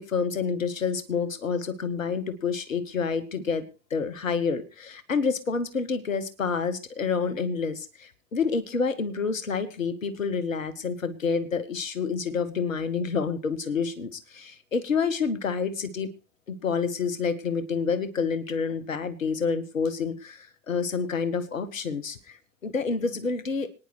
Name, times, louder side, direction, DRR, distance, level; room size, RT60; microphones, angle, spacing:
voice 1, 0.0-3.6 3.9-16.1 16.5-22.4 22.6-23.7, left 5 dB, 90° left, 14 dB, 1.1 m, -28 dB
25.5 x 9.8 x 3.2 m, 0.33 s
figure-of-eight pair, 65°, 38 cm